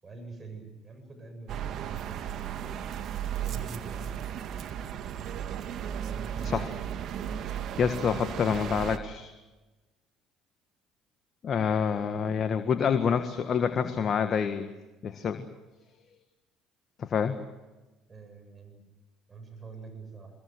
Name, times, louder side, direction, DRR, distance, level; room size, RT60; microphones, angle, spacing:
voice 1, 0.0-2.3 3.4-4.2 6.0-6.6 18.1-18.8 19.3-20.3, right 3 dB, 30° right, 6 dB, 7.6 m, -45 dB
sound 1, 1.5-9.0, right 9 dB, 60° right, 1.7 m, -35 dB
voice 2, 7.4-9.3 11.4-14.7 15.0-15.4 17.0-17.4, left 7 dB, 50° left, 8 dB, 1.7 m, -27 dB
24.5 x 22.0 x 7.9 m, 1.1 s
hypercardioid pair, 60°, 0 cm